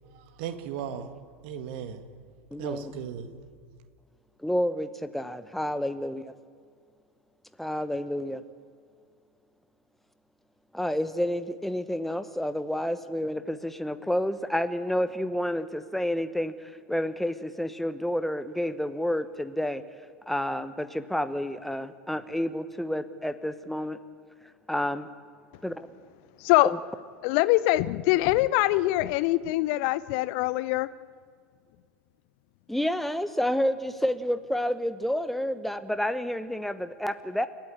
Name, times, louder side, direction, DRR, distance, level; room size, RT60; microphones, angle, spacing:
voice 1, 0.1-1.1 1.4-2.1 2.6-3.3, right 8 dB, 50° right, 2.0 m, -36 dB
voice 2, 2.5-2.9 4.4-6.3 7.6-8.4 10.7-19.8 20.3-24.0 24.7-25.1 25.6-25.9 32.7-37.5, equal, 5° left, 1.0 m, -29 dB
voice 3, 26.4-26.7 27.2-30.9, left 18 dB, 50° left, 0.9 m, -23 dB
30.0 x 14.0 x 8.8 m
figure-of-eight pair, 80°, 7 cm